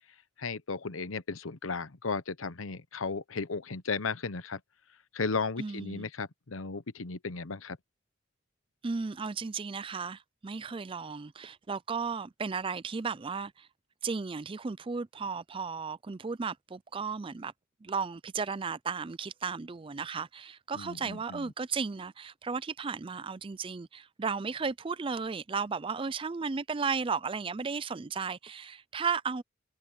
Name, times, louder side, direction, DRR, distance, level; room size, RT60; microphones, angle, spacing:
voice 1, 0.4-4.6 5.1-7.8 20.7-21.5, left 4 dB, 90° left, 1.0 m, -35 dB
voice 2, 5.6-6.1 8.8-13.7 14.0-17.5 17.8-29.4, right 5 dB, 25° right, 0.4 m, -34 dB
head